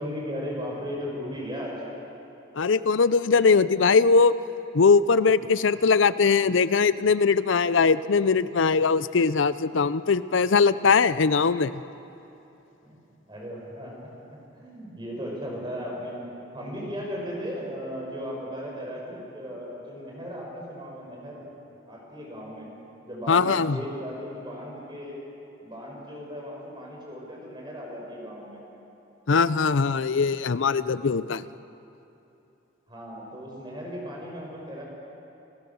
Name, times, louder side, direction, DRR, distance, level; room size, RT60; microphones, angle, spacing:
voice 1, 0.0-1.8 12.8-13.0 13.3-14.1 14.5-16.2 16.5-21.5 21.9-22.8 23.0-25.2 25.6-28.6 32.9-34.8, equal, 25° right, -2 dB, 5.6 m, -36 dB
voice 2, 2.6-4.3 4.7-11.8 23.3-23.8 29.3-31.4, left 5 dB, 80° left, 16 dB, 0.6 m, -21 dB
29.5 x 15.5 x 7.1 m, 2.9 s
head